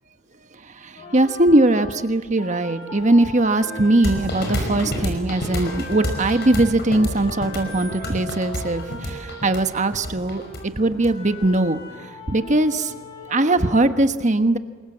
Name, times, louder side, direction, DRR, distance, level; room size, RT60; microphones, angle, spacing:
voice 1, 0.5-12.9 13.3-14.6, right 2 dB, 35° right, 9 dB, 1.2 m, -20 dB
sound 1, 1.0-5.0 5.4-14.0, left 1 dB, 25° left, 6.9 m, -39 dB
sound 2, 4.0-11.6, left 1 dB, 55° left, 5.4 m, -29 dB
28.0 x 22.5 x 7.4 m, 1.5 s
head